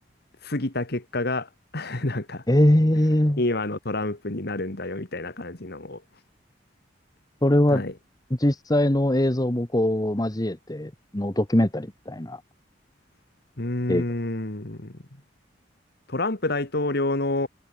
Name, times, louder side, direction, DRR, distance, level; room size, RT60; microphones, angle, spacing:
voice 1, 0.4-2.4 3.4-6.0 7.7-7.9 13.6-15.0 16.1-17.5, left 2 dB, 60° left, 2.2 m, -28 dB
voice 2, 2.5-3.4 7.4-7.8 8.4-12.4 13.9-14.0, left 1 dB, 20° left, 1.5 m, -22 dB
head